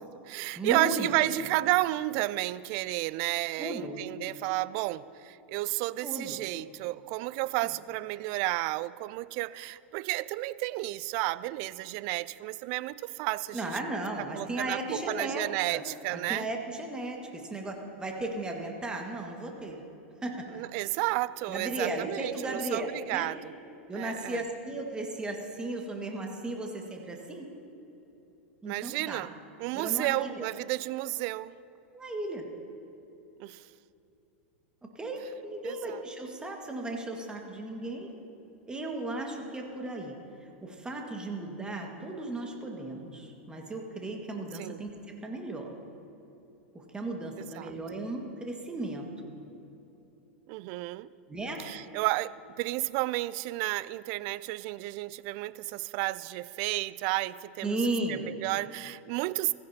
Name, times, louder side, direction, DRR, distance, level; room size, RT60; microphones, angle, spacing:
voice 1, 0.0-13.7 14.3-16.5 20.5-23.5 23.9-24.4 28.6-29.3 29.6-31.5 33.4-33.6 35.6-36.0 44.5-44.8 47.4-47.7 50.5-51.1 51.6-57.8 58.1-59.5, right 19 dB, 50° right, 18 dB, 0.4 m, -32 dB
voice 2, 0.6-1.1 3.6-4.0 6.0-6.4 7.6-7.7 13.5-15.8 16.1-19.8 20.2-20.6 21.5-23.3 23.9-27.5 28.6-29.2 29.7-30.5 31.9-32.5 34.8-38.1 38.7-40.2 40.6-45.7 46.7-49.4 51.3-51.6 57.6-58.3, right 2 dB, 15° right, 1 dB, 1.8 m, -35 dB
15.5 x 15.5 x 2.9 m, 2.9 s
hypercardioid pair, 100°, 7 cm